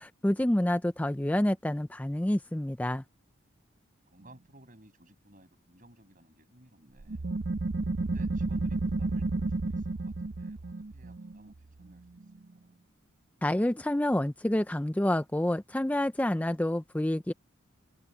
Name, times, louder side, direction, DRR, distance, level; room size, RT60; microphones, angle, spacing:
voice 1, 0.0-3.0 13.4-17.3, left 1 dB, 5° left, 0.4 m, -28 dB
voice 2, 4.1-7.3 8.0-12.2 12.5-12.8, right 1 dB, 40° right, 7.0 m, -58 dB
sound 1, 7.0-12.3, right 3 dB, 55° right, 0.7 m, -32 dB
head